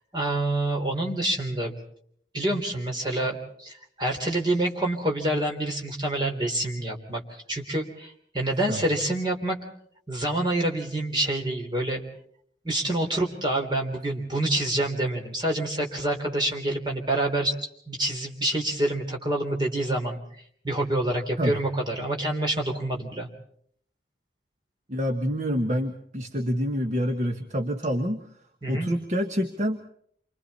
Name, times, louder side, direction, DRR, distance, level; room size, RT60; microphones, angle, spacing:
voice 1, 0.1-1.8 2.3-9.6 10.1-12.0 12.6-17.5 17.9-20.2 20.6-23.3 28.6-28.9, right 1 dB, 25° right, 1 dB, 3.4 m, -27 dB
voice 2, 24.9-28.2 28.7-29.8, equal, 40° right, 4 dB, 1.3 m, -27 dB
28.5 x 25.0 x 4.2 m, 0.64 s
head